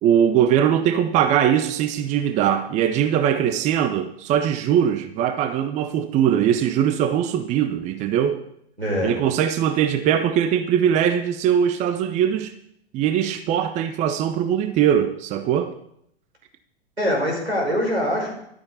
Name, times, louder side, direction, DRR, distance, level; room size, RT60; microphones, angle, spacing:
voice 1, 0.0-8.4 9.0-12.5 12.9-15.8, right 9 dB, 20° right, 0.7 m, -21 dB
voice 2, 8.8-9.1 17.0-18.4, equal, 85° right, 6.0 m, -23 dB
14.0 x 12.0 x 4.1 m
figure-of-eight pair, 100°, 32 cm